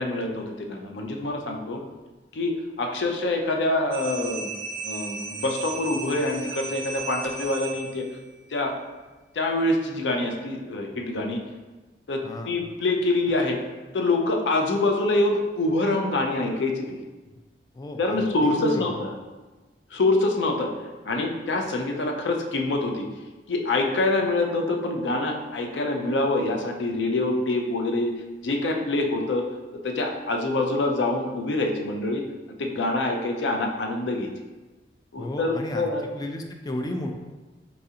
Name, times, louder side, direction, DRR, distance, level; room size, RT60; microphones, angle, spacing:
voice 1, 0.0-1.8 2.3-4.5 4.8-8.0 8.5-8.7 9.3-11.4 12.1-13.6 13.9-17.0 18.0-19.1 19.9-20.7 21.1-23.1 23.5-28.1 28.4-29.5 29.8-34.3 35.1-36.1, left 2 dB, 80° left, 2 dB, 0.5 m, -25 dB
sound 1, 3.9-8.2, right 4 dB, 80° right, 0.5 m, -35 dB
voice 2, 12.2-12.5 17.7-18.9 35.2-35.9 36.2-37.2, left 1 dB, 20° left, 3 dB, 0.3 m, -33 dB
4.1 x 2.4 x 2.7 m, 1.2 s
head